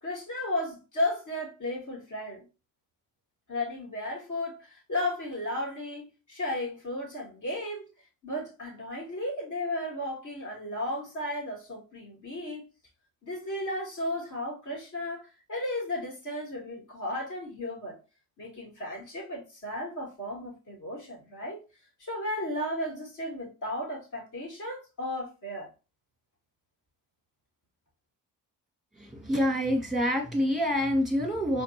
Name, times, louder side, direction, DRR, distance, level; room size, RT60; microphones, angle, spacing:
voice 1, 0.0-2.5 3.5-7.8 8.2-12.7 13.2-18.0 18.4-21.6 22.0-25.7, left 1 dB, 45° left, 2.5 m, -34 dB
voice 2, 29.0-31.6, equal, ahead, 1.9 m, -27 dB
4.3 x 3.7 x 3.0 m
hypercardioid pair, 50°, 44 cm